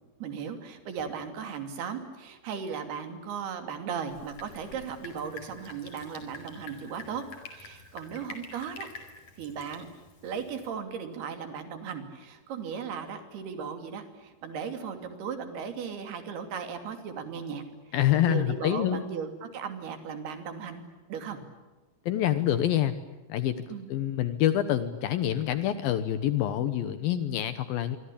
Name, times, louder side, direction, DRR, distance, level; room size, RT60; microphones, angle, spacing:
voice 1, 0.2-7.2 7.5-8.9 9.4-9.9 10.2-17.6 18.1-20.8 21.1-21.4 23.7-23.9, right 6 dB, 75° right, 7 dB, 4.7 m, -37 dB
Drip, 4.1-10.7, left 3 dB, 45° left, 5.7 m, -48 dB
voice 2, 17.9-19.0 22.1-22.9 23.3-23.6 23.9-28.0, left 11 dB, 70° left, 12 dB, 2.7 m, -26 dB
26.0 x 25.0 x 8.6 m, 1.2 s
omnidirectional pair, 4.6 m